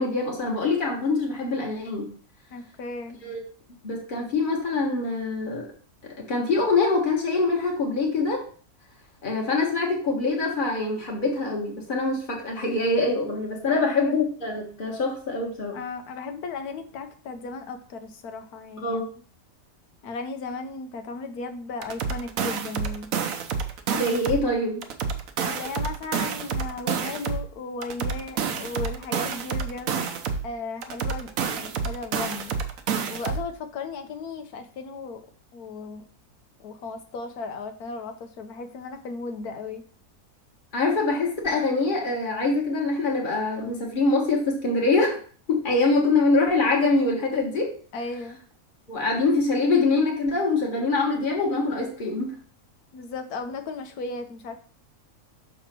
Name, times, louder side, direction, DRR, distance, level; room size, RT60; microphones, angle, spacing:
voice 1, 0.0-2.1 3.2-3.4 3.8-5.6 6.2-8.4 9.2-15.8 18.8-19.1 23.9-24.8 40.7-45.2 45.5-47.7 48.9-52.3, left 3 dB, 35° left, -1 dB, 1.7 m, -24 dB
voice 2, 2.5-3.2 13.7-14.1 15.7-19.0 20.0-23.1 25.4-30.1 30.4-32.6 33.1-35.2 35.5-36.0 36.6-39.8 47.9-48.4 52.9-54.6, left 4 dB, 80° left, 7 dB, 1.4 m, -36 dB
sound 1, 21.8-24.5 24.8-27.5 27.8-30.5 30.8-33.5, right 6 dB, 65° right, 1.2 m, -29 dB
6.2 x 4.0 x 6.0 m, 0.43 s
omnidirectional pair, 1.6 m